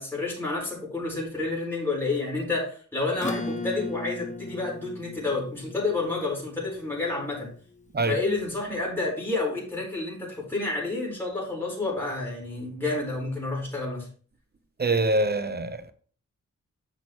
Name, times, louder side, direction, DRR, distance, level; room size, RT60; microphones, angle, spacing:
voice 1, 0.0-7.5 8.1-14.1, left 3 dB, 5° left, 4.4 m, -29 dB
Acoustic guitar / Strum, 3.2-8.1, left 2 dB, 25° left, 0.9 m, -37 dB
voice 2, 14.8-15.9, right 2 dB, 30° right, 0.9 m, -24 dB
8.5 x 6.7 x 3.1 m
cardioid pair, 75°, 31 cm